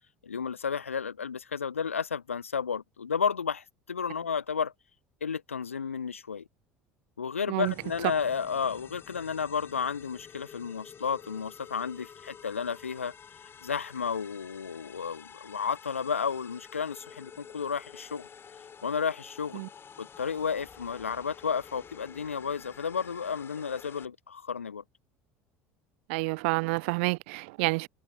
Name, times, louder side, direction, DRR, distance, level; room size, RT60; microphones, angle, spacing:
voice 1, 0.2-4.7 5.2-6.4 7.2-13.1 13.6-18.3 18.8-19.6 20.0-24.8, left 6 dB, 85° left, 4.5 m, -32 dB
sound 1, 7.6-24.1, left 7 dB, 35° left, 5.8 m, -50 dB
voice 2, 26.1-27.9, right 28 dB, 65° right, 0.9 m, -29 dB
figure-of-eight pair, 70°, 7 cm